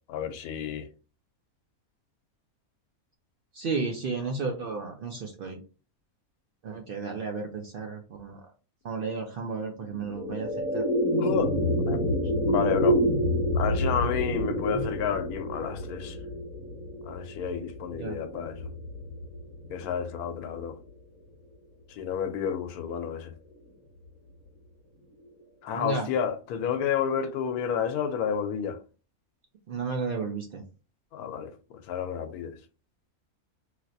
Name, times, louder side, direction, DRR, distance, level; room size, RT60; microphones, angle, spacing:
voice 1, 0.1-0.9 11.2-11.5 11.9-12.0 12.5-13.0 13.5-16.2 17.0-18.7 19.7-20.8 21.9-23.3 25.6-28.8 31.1-32.6, left 8 dB, 80° left, 1.1 m, -30 dB
voice 2, 3.5-5.6 6.6-8.4 8.8-10.8 14.7-14.8 17.9-18.2 25.7-26.1 29.7-30.6, right 4 dB, 75° right, 0.5 m, -33 dB
sound 1, 9.8-20.3, equal, 55° right, 2.0 m, -28 dB
3.2 x 2.8 x 2.6 m
omnidirectional pair, 1.6 m